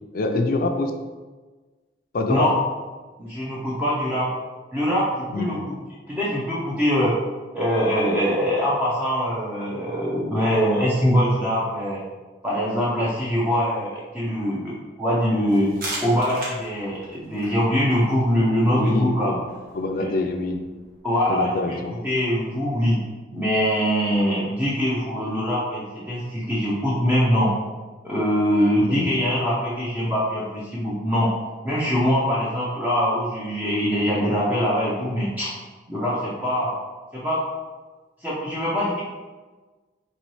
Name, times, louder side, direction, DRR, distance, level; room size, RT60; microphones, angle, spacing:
voice 1, 0.1-0.9 2.1-2.5 5.3-5.7 18.7-19.4 19.7-20.7 21.3-22.0 28.8-29.1, left 2 dB, 50° left, 5 dB, 0.4 m, -25 dB
voice 2, 3.2-4.3 4.7-5.8 6.1-7.1 7.5-12.0 12.4-15.7 16.0-19.3 20.0-20.1 21.0-23.0 23.3-27.5 28.0-31.3 31.6-35.5 35.9-36.8 37.1-37.4 38.2-39.0, equal, 10° right, -7 dB, 0.6 m, -23 dB
sound 1, 15.5-21.0, right 2 dB, 50° right, 1.1 m, -39 dB
4.2 x 3.0 x 3.1 m, 1.3 s
head